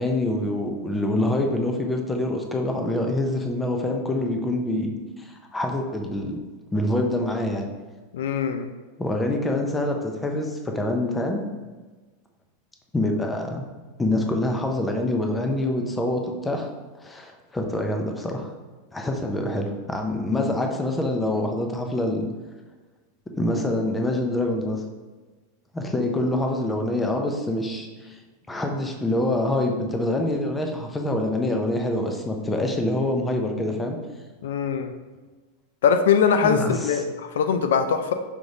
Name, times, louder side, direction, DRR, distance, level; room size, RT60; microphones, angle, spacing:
voice 1, 0.0-4.9 5.2-6.4 6.7-7.7 9.0-11.4 12.9-13.6 14.0-16.7 17.0-18.5 18.9-22.3 23.3-24.8 25.7-28.2 28.5-34.0 36.4-37.0, left 1 dB, 10° left, 3 dB, 0.4 m, -25 dB
voice 2, 8.1-8.7 34.4-34.9 35.8-38.1, left 6 dB, 85° left, 8 dB, 0.3 m, -22 dB
5.0 x 3.1 x 2.6 m, 1.3 s
supercardioid pair, 145°, 0 cm